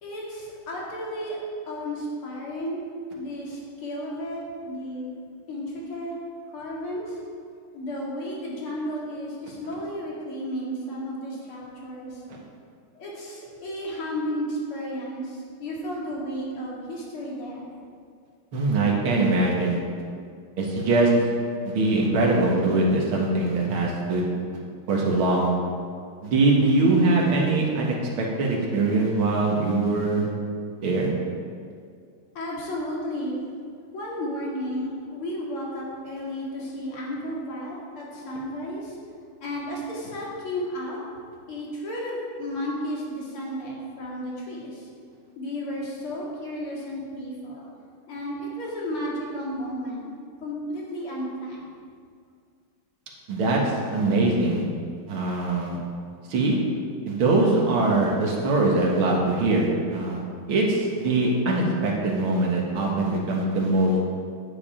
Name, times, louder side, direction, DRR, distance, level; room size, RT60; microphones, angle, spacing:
voice 1, 0.0-2.8 3.1-5.2 5.5-6.2 6.5-7.2 7.7-12.2 12.9-17.7 32.3-33.6 33.9-39.0 39.4-41.2 41.5-44.9 45.4-47.7 48.1-51.7, equal, 85° left, -4 dB, 3.2 m, -33 dB
voice 2, 18.5-19.8 20.6-21.1 21.6-24.2 24.9-25.5 26.2-30.3 30.8-31.1 53.3-54.6 55.1-55.8 56.3-56.6 57.1-60.2 60.5-64.0, right 2 dB, 75° right, -2 dB, 2.4 m, -22 dB
9.6 x 9.5 x 5.0 m, 2.2 s
omnidirectional pair, 2.3 m